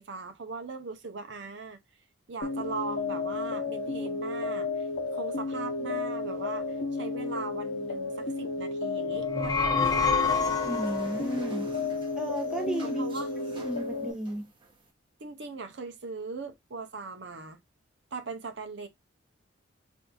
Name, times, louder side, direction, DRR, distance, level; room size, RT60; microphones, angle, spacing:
voice 1, 0.0-1.8 2.3-4.9 5.1-10.3 12.8-13.3 15.2-17.6 18.1-18.9, right 4 dB, 60° right, 0.6 m, -39 dB
sound 1, 2.4-14.1, left 3 dB, 65° left, 0.7 m, -32 dB
sound 2, 9.2-11.1, left 5 dB, 20° left, 0.4 m, -27 dB
sound 3, 9.6-14.9, right 2 dB, 25° right, 1.0 m, -48 dB
voice 2, 10.6-11.7 12.1-13.1 13.5-14.4, right 1 dB, 5° right, 0.8 m, -34 dB
4.0 x 2.6 x 2.2 m
head